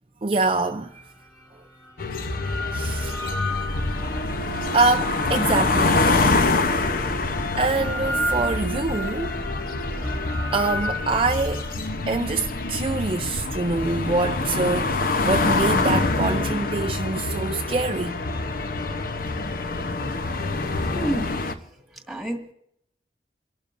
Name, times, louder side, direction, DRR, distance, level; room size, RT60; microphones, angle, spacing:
voice 1, 0.2-0.9 2.7-3.3 4.7-6.0 7.6-9.3 10.5-11.6 12.1-18.2, right 3 dB, 30° right, 0.4 m, -25 dB
sound 1, 1.0-1.1 2.0-6.3 7.0-11.7, equal, 15° left, 2.6 m, -32 dB
sound 2, 2.0-21.5, left 3 dB, 55° left, 0.8 m, -26 dB
sound 3, 2.9-15.7, right 1 dB, 55° right, 0.8 m, -38 dB
voice 2, 20.0-21.6 22.1-22.5, right 1 dB, ahead, 1.8 m, -32 dB
29.0 x 12.0 x 2.6 m
head